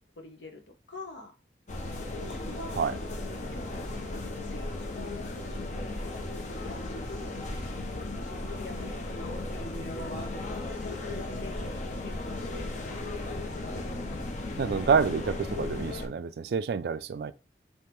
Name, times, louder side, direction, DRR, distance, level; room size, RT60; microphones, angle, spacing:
voice 1, 0.2-0.6 0.9-1.3 2.2-2.9 3.5-7.4 7.9-10.3 10.8-14.0, left 2 dB, 85° left, 1.1 m, -47 dB
sound 1, 1.7-16.1, left 2 dB, 40° left, 0.7 m, -36 dB
voice 2, 14.6-17.3, right 5 dB, 60° right, 0.3 m, -28 dB
3.5 x 2.9 x 4.4 m
head